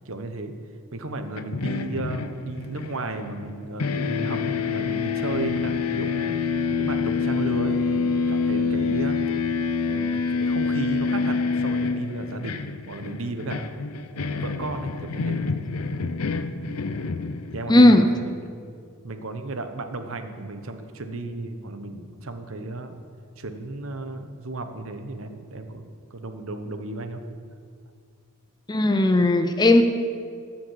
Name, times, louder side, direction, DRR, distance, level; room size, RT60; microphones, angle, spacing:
voice 1, 0.0-0.5 0.9-9.2 9.9-13.7 14.2-15.4 17.5-18.3 19.0-23.0 23.4-27.2, right 2 dB, 65° right, 7 dB, 0.9 m, -34 dB
sound 1, 1.3-3.5 3.8-17.8, left 4 dB, 85° left, 0.6 m, -27 dB
voice 2, 17.7-18.1 28.7-29.8, left 1 dB, 20° left, 8 dB, 0.5 m, -16 dB
14.5 x 5.8 x 7.6 m, 2.2 s
head